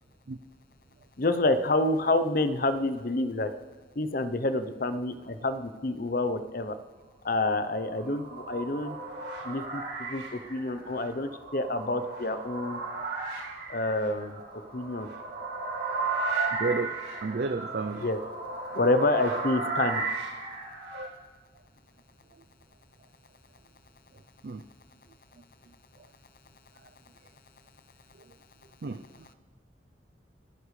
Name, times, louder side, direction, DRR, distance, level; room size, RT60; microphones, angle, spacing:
voice 1, 1.2-3.5 4.0-6.7 7.2-9.0 9.4-12.8 13.7-14.4 14.7-15.1 18.0-18.2 18.7-20.0, left 2 dB, 50° left, 10 dB, 0.7 m, -28 dB
sound 1, 7.7-21.1, right 3 dB, 75° right, 4.1 m, -35 dB
voice 2, 16.6-16.9 17.2-18.0 20.9-21.1 24.4-24.6 28.8-29.0, right 4 dB, 55° right, 9 dB, 0.5 m, -31 dB
29.5 x 10.0 x 3.3 m, 1.5 s
head